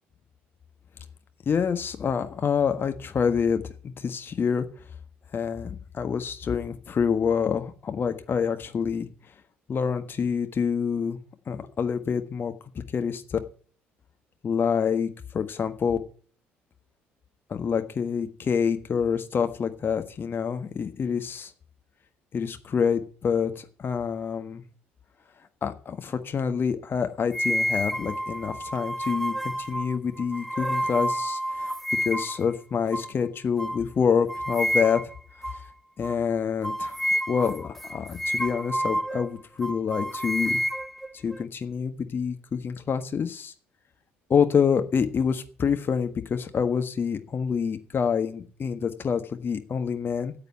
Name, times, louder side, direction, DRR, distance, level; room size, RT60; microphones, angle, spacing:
voice 1, 1.4-4.6 5.3-9.1 9.7-11.2 11.5-12.5 12.9-13.4 14.4-16.0 17.5-21.5 22.3-24.6 25.6-31.7 32.0-35.0 36.0-37.0 37.3-40.6 41.2-43.5 44.3-50.3, left 6 dB, 35° left, 8 dB, 1.5 m, -27 dB
sound 1, 27.3-32.4 32.9-33.1 33.6-33.8 34.3-35.2 35.4-35.6 36.0-36.2 36.6-39.3 39.6-41.4, equal, 5° left, 0.7 m, -29 dB
9.5 x 7.8 x 9.1 m, 0.43 s
figure-of-eight pair, 55°, 6 cm